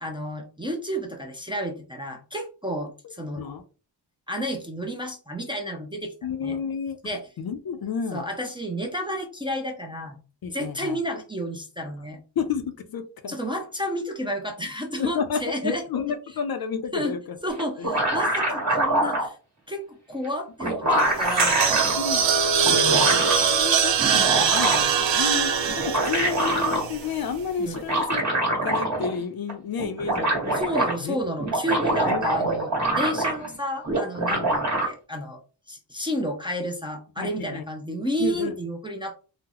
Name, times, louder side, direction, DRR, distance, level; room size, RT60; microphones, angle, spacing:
voice 1, 0.0-3.4 4.3-6.1 6.4-6.6 7.0-7.3 8.1-10.2 10.5-12.2 13.3-15.8 16.9-17.1 17.4-19.4 19.7-22.0 22.6-23.1 27.6-27.8 30.5-35.4 35.7-39.2, equal, 10° right, 1 dB, 0.4 m, -31 dB
voice 2, 6.2-7.0 7.4-8.2 10.4-11.0 12.4-13.3 15.0-17.2 17.8-17.9 22.0-22.2 22.8-25.5 25.8-28.2 28.6-30.6 31.0-31.2 32.1-32.5 34.3-34.5 37.2-37.6 38.2-38.5, left 6 dB, 55° left, 8 dB, 0.5 m, -31 dB
sound 1, 17.6-19.3 20.2-20.3 20.6-21.9 22.6-23.4 24.0-25.0 25.7-26.8 27.7-29.2 29.5-29.6 29.8-30.9 31.4-33.5 33.8-34.9, right 1 dB, 40° right, 1.3 m, -24 dB
sound 2, 21.0-27.3, right 7 dB, 80° right, 0.6 m, -22 dB
3.7 x 2.0 x 2.9 m, 0.36 s
wide cardioid pair, 160°, 44 cm